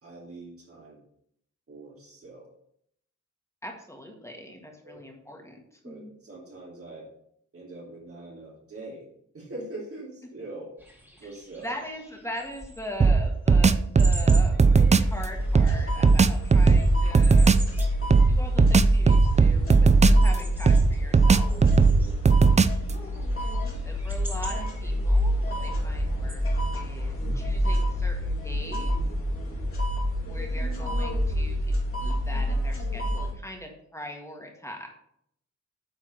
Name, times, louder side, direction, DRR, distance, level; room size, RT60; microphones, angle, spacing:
voice 1, 0.0-1.0 1.7-2.5 4.8-5.0 5.8-7.1 7.5-9.1 9.3-10.7 11.2-11.7 21.8-22.2, right 2 dB, 50° right, -3 dB, 2.5 m, -42 dB
voice 2, 3.6-6.1 11.2-11.3 11.6-17.5 18.3-21.6 23.4-23.5 23.9-26.4 26.7-29.1 30.2-34.9, left 1 dB, 10° left, 1 dB, 1.7 m, -41 dB
sound 1, 10.8-26.3, right 1 dB, 5° right, 2.3 m, -46 dB
sound 2, 13.0-15.1 15.6-17.7 18.1-20.4 20.7-22.9, right 4 dB, 25° right, 0.4 m, -18 dB
sound 3, 15.0-33.3, equal, 45° left, 2.9 m, -26 dB
9.2 x 4.0 x 6.5 m, 0.70 s
wide cardioid pair, 100°, 30 cm